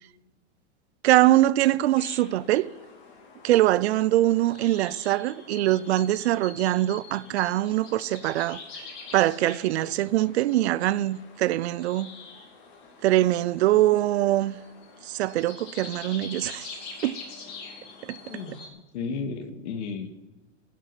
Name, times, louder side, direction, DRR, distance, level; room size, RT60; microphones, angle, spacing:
voice 1, 1.0-2.7 3.4-8.6 9.1-12.1 13.0-14.6 15.1-16.7 17.0-17.2 18.0-18.2, right 15 dB, 65° right, 0.5 m, -23 dB
sound 1, 2.0-18.7, left 4 dB, 30° left, 2.5 m, -45 dB
voice 2, 18.2-18.6 18.9-20.3, left 5 dB, 70° left, 1.9 m, -33 dB
12.0 x 6.6 x 9.1 m
supercardioid pair, 165°, 36 cm